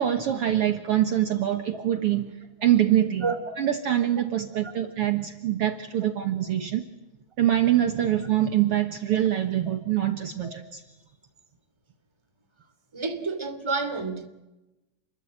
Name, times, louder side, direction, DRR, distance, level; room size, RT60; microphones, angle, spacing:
voice 1, 0.0-6.8 7.4-10.8, right 11 dB, 55° right, 2.1 m, -24 dB
voice 2, 3.2-3.6 4.6-4.7 10.4-10.5 12.9-14.3, right 4 dB, 10° right, 2.5 m, -29 dB
29.0 x 22.0 x 8.9 m
omnidirectional pair, 3.3 m